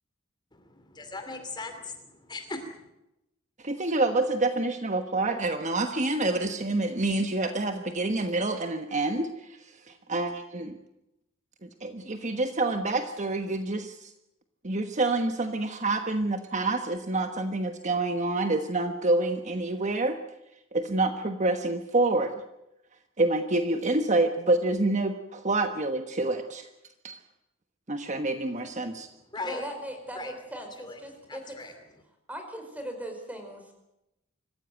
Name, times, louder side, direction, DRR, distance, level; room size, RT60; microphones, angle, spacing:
voice 1, 0.5-2.8 29.3-29.6 30.2-30.3 30.8-31.0 31.3-31.7, left 3 dB, 20° left, 7 dB, 2.7 m, -38 dB
voice 2, 3.6-10.8 11.6-14.1 14.6-20.2 20.7-22.3 23.2-26.7 27.0-27.2 27.9-29.1, right 2 dB, 35° right, 7 dB, 1.3 m, -27 dB
voice 3, 29.4-31.6 32.3-33.7, right 1 dB, 10° right, 5 dB, 4.8 m, -39 dB
25.5 x 15.0 x 9.1 m, 0.88 s
head